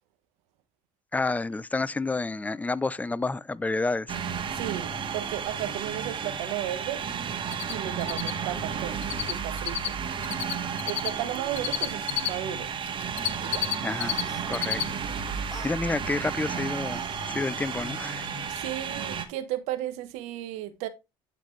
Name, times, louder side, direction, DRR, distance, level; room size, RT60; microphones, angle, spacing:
voice 1, 1.1-4.2 13.8-14.2 14.5-14.8 15.3-18.3, left 3 dB, 15° left, 0.5 m, -30 dB
sound 1, 4.1-19.2, right 6 dB, 45° right, 1.8 m, -33 dB
voice 2, 4.5-7.0 7.7-9.0 9.3-10.0 10.9-12.7 13.2-13.7 15.5-15.6 18.5-20.9, right 13 dB, 80° right, 1.1 m, -34 dB
Cricket, 7.5-7.7 8.0-9.3 9.6-12.3 12.8-14.2 14.5-14.8 15.2-15.3 17.8-17.9 18.3-18.4 18.6-18.7, left 13 dB, 70° left, 1.0 m, -29 dB
sound 2, 13.7-14.6 15.5-15.8 16.4-18.3, left 2 dB, 30° left, 2.1 m, -47 dB
11.5 x 4.1 x 3.2 m
supercardioid pair, 80°, 12 cm